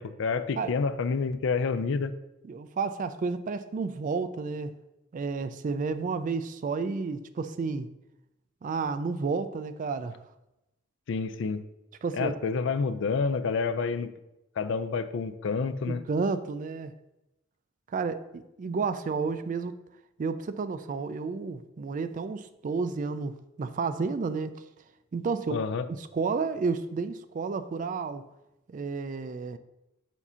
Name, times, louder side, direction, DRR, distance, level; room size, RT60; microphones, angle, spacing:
voice 1, 0.0-2.1 11.1-11.6 12.1-14.1 14.6-16.0 25.5-25.9, left 5 dB, 65° left, 13 dB, 0.4 m, -28 dB
voice 2, 2.4-4.7 5.1-7.9 8.6-10.2 12.0-12.3 15.9-16.9 17.9-19.8 20.2-24.6 25.1-25.6 26.0-28.2 28.7-29.6, right 4 dB, 40° right, 11 dB, 0.3 m, -31 dB
7.2 x 2.7 x 5.5 m, 0.92 s
head